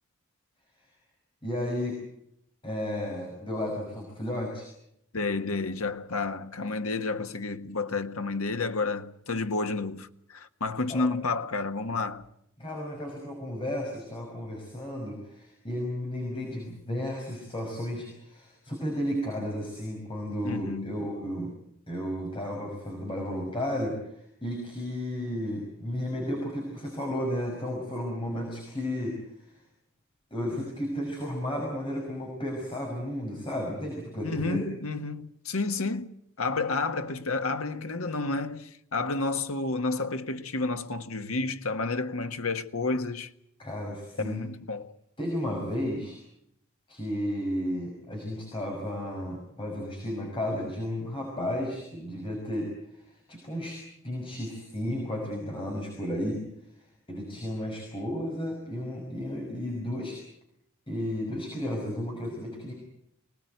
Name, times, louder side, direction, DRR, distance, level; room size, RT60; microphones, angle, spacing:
voice 1, 1.4-2.0 2.6-4.7 10.9-11.1 12.6-21.5 21.9-29.5 30.3-34.6 43.6-44.4 45.2-46.2 46.9-53.8 54.0-56.4 57.1-60.2 60.9-62.7, left 1 dB, 25° left, 5.8 m, -33 dB
voice 2, 5.1-12.2 20.4-20.9 34.2-43.3 44.2-44.9, left 3 dB, 85° left, 1.5 m, -30 dB
25.0 x 19.5 x 9.4 m
head